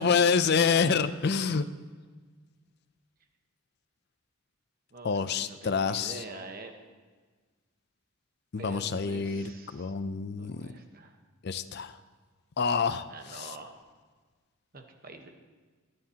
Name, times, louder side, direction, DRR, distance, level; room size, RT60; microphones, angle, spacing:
voice 1, 0.0-1.7 5.0-6.2 8.5-10.7 11.4-11.9 12.6-13.5, left 5 dB, 50° left, 12 dB, 0.5 m, -27 dB
voice 2, 4.9-6.7 8.6-9.9 10.3-11.2 13.1-13.7 14.7-15.3, right 2 dB, 45° right, 5 dB, 1.1 m, -45 dB
22.0 x 9.7 x 2.9 m, 1.4 s
head